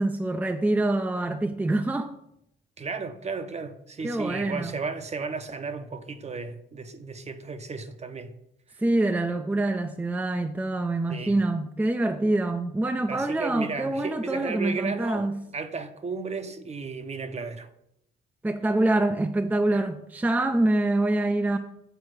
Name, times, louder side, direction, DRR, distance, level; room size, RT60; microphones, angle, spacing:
voice 1, 0.0-2.1 4.0-4.8 8.8-15.4 18.4-21.6, right 2 dB, 10° right, 0.5 m, -25 dB
voice 2, 2.8-8.3 11.1-11.4 13.1-17.7, right 4 dB, 35° right, 0.8 m, -34 dB
8.0 x 4.2 x 6.4 m
cardioid pair, 90°, 20 cm